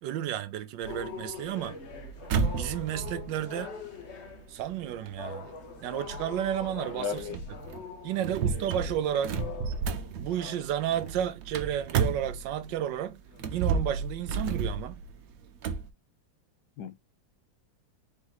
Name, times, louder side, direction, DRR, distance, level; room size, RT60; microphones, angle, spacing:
voice 1, 0.0-1.8 2.6-3.7 4.5-5.4 5.8-7.4 8.0-9.4 10.2-13.2 13.5-15.0, right 10 dB, 85° right, 1.3 m, -32 dB
sound 1, 0.8-11.2 11.7-12.0 12.6-12.9 13.3-13.6, left 6 dB, 45° left, 1.0 m, -44 dB
sound 2, 0.8-12.8 13.3-15.9, right 5 dB, 65° right, 1.0 m, -33 dB
voice 2, 6.9-7.4 16.8-16.9, left 7 dB, 75° left, 1.2 m, -34 dB
4.2 x 3.0 x 3.9 m
omnidirectional pair, 2.0 m